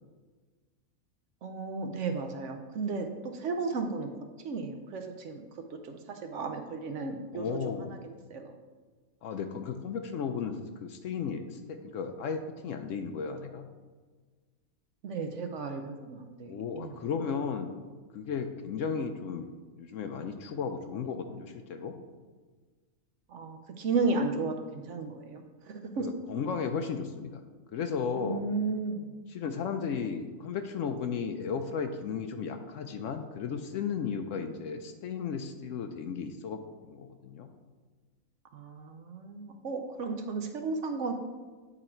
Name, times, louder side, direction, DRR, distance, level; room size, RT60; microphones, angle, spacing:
voice 1, 1.4-4.1 4.4-5.4 5.8-7.6 7.9-8.5 15.0-17.0 23.3-26.1 28.2-29.1 38.5-41.1, right 4 dB, 65° right, 5 dB, 0.9 m, -34 dB
voice 2, 7.3-8.0 9.2-13.7 16.5-17.7 18.1-22.0 26.0-27.4 27.7-28.4 29.3-37.5, left 6 dB, 70° left, 7 dB, 0.8 m, -35 dB
8.9 x 4.0 x 4.4 m, 1.4 s
omnidirectional pair, 1.5 m